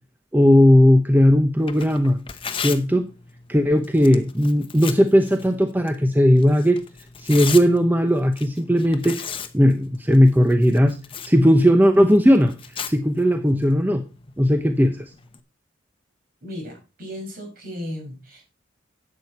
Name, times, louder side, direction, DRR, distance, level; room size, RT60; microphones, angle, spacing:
voice 1, 0.3-2.2 2.6-3.1 3.5-6.8 7.2-11.0 11.2-12.6 12.9-14.0 14.4-15.0, equal, 10° right, 7 dB, 0.7 m, -17 dB
Tearing, 1.6-15.4, left 7 dB, 30° left, 0.8 m, -38 dB
voice 2, 16.4-18.5, left 1 dB, 50° right, 1 dB, 5.6 m, -35 dB
11.0 x 8.2 x 4.2 m, 0.31 s
head